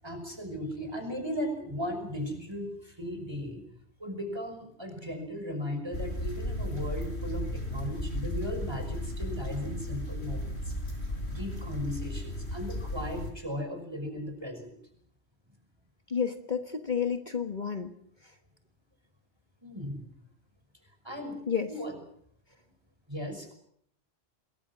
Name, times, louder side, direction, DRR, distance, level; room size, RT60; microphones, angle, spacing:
voice 1, 0.0-3.6 4.0-10.6 11.3-14.7 19.6-20.1 21.0-21.4 21.7-22.0 23.1-23.5, equal, 25° right, 6 dB, 5.8 m, -37 dB
sound 1, 5.9-13.3, left 1 dB, 75° left, 5.5 m, -35 dB
voice 2, 16.1-17.9 21.5-21.7, left 7 dB, 45° left, 7 dB, 1.6 m, -30 dB
27.0 x 21.5 x 6.2 m, 0.66 s
omnidirectional pair, 1.1 m